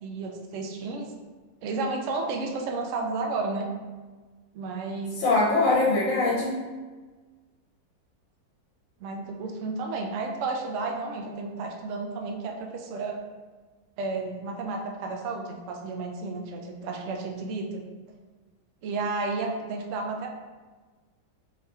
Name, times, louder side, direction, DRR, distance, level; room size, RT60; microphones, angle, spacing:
voice 1, 0.0-1.1 1.6-3.7 4.5-5.2 9.0-13.2 14.0-17.8 18.8-20.3, right 3 dB, 75° right, 2 dB, 0.7 m, -32 dB
voice 2, 5.2-6.5, left 3 dB, 80° left, -4 dB, 1.3 m, -22 dB
4.2 x 4.0 x 2.4 m, 1.4 s
omnidirectional pair, 1.9 m